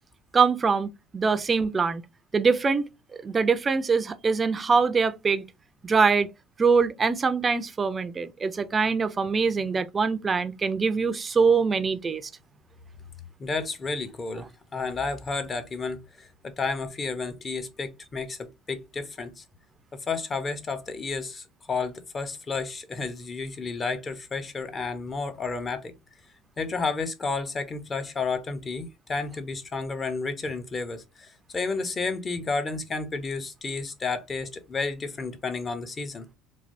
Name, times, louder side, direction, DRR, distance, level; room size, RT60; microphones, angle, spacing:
voice 1, 0.3-2.0 2.3-2.9 3.2-5.4 5.8-6.3 6.6-12.2, right 5 dB, 25° right, 0.4 m, -23 dB
voice 2, 13.4-14.5 14.7-19.4 19.9-25.9 26.6-36.2, left 4 dB, 25° left, 0.5 m, -31 dB
3.2 x 2.2 x 2.5 m
cardioid pair, 125°, 0 cm